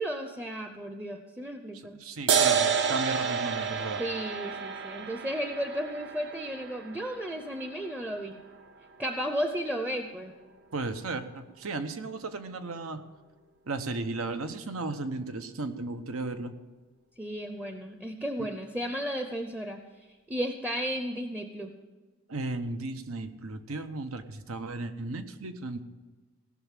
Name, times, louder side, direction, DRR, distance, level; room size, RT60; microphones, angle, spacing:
voice 1, 0.0-2.0 4.0-8.4 9.0-10.3 17.2-19.8 20.3-21.7, equal, 5° right, 5 dB, 0.6 m, -34 dB
voice 2, 2.0-4.0 10.7-13.0 13.7-16.5 18.4-18.5 22.3-25.8, right 3 dB, 80° right, 9 dB, 1.0 m, -35 dB
sound 1, 2.3-9.3, right 7 dB, 55° right, 0.8 m, -30 dB
17.5 x 6.2 x 7.4 m, 1.3 s
head